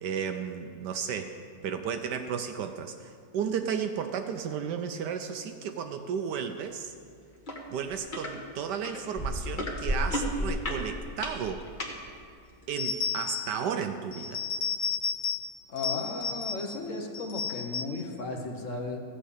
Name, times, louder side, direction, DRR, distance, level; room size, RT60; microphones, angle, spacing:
voice 1, 0.0-6.9 7.7-11.7 12.7-14.4, right 7 dB, 75° right, 7 dB, 1.1 m, -33 dB
sound 1, 7.5-7.6 7.9-8.3 8.8-11.9 12.6-12.7, left 1 dB, 30° left, 1.2 m, -31 dB
sound 2, 12.8-13.6 14.1-15.5 15.8-16.8 17.1-18.0, left 6 dB, 75° left, 1.6 m, -32 dB
voice 2, 15.7-19.0, left 3 dB, 50° left, 2 dB, 1.2 m, -35 dB
14.5 x 5.5 x 8.3 m, 2.3 s
omnidirectional pair, 2.0 m